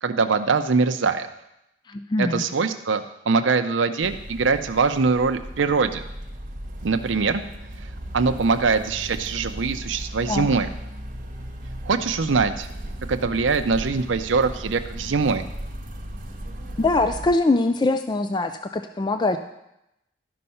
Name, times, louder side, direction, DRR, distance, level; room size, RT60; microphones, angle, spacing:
voice 1, 0.0-1.3 2.2-6.0 6.8-7.4 8.1-10.7 11.8-12.7 13.1-15.4, right 4 dB, 80° right, 8 dB, 0.6 m, -22 dB
voice 2, 1.9-2.4 10.3-10.5 16.8-19.4, left 2 dB, 25° left, 8 dB, 0.3 m, -22 dB
sound 1, 4.0-17.3, equal, 40° right, 1.1 m, -36 dB
12.0 x 5.5 x 5.6 m, 0.86 s
head